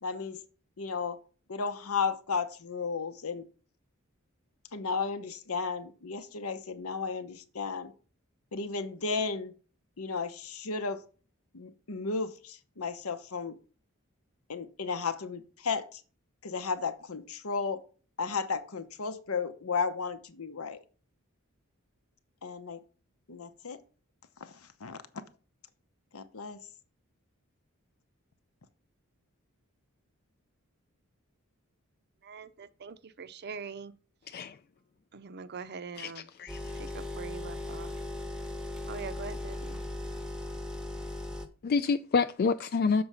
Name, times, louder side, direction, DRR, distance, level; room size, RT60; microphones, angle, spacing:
voice 1, 0.0-0.4 0.8-1.2 1.5-3.5 4.7-7.9 8.5-9.5 10.0-11.0 11.5-13.6 14.5-16.0 16.4-17.8 18.2-20.8 22.4-22.8 23.3-23.8 24.4-25.0 26.1-26.6, left 5 dB, 80° left, 0.9 m, -34 dB
voice 2, 32.2-33.9 35.1-36.2 36.7-37.9 38.9-39.8, right 5 dB, 50° right, 0.5 m, -43 dB
voice 3, 36.0-36.6 41.6-43.0, left 5 dB, 45° left, 0.3 m, -28 dB
sound 1, 36.5-41.5, left 1 dB, 5° right, 0.8 m, -38 dB
6.9 x 4.8 x 5.5 m
head